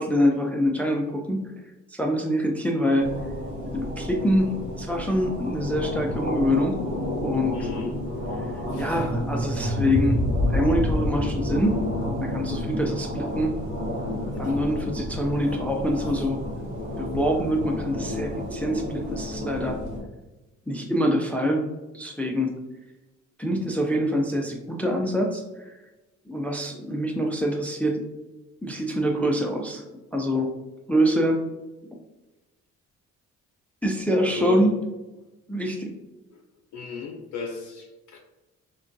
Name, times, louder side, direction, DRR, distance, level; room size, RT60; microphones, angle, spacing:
voice 1, 0.0-1.4 1.9-3.1 3.7-6.8 7.2-7.6 8.8-10.2 10.5-11.8 12.2-13.5 14.4-16.4 17.0-19.8 20.7-21.6 21.9-22.5 23.4-25.7 26.3-28.0 28.6-29.8 30.1-30.5 30.9-31.4 33.8-34.7 35.5-35.9, equal, 5° left, 1 dB, 0.3 m, -25 dB
sound 1, 3.0-20.0, left 1 dB, 80° right, 1.0 m, -32 dB
voice 2, 7.5-7.9 8.7-9.0 14.3-14.6 34.2-34.6 36.3-36.4 36.7-38.2, left 4 dB, 70° left, -1 dB, 0.6 m, -35 dB
sound 2, 8.5-13.6, equal, 25° right, 0.7 m, -28 dB
3.6 x 2.2 x 2.6 m, 1.0 s
cardioid pair, 90°, 30 cm